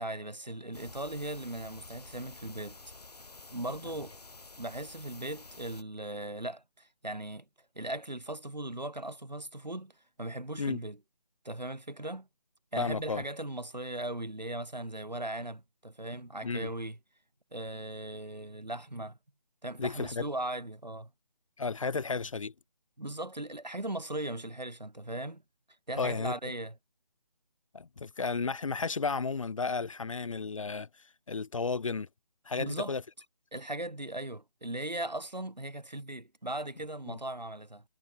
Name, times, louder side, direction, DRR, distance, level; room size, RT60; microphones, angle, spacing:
voice 1, 0.0-2.8 3.5-4.1 4.6-7.4 7.7-9.9 10.2-11.0 11.4-12.3 12.7-17.0 17.5-19.2 19.6-21.1 23.0-25.4 25.9-26.8 32.6-32.9 33.5-37.8, right 1 dB, 85° right, 3.0 m, -38 dB
sound 1, 0.7-5.8, left 3 dB, 65° left, 2.7 m, -50 dB
voice 2, 12.8-13.2 16.4-16.7 19.8-20.3 21.6-22.5 26.0-26.3 27.7-32.1 32.4-33.0, left 4 dB, 50° left, 0.8 m, -33 dB
figure-of-eight pair, 155°, 21 cm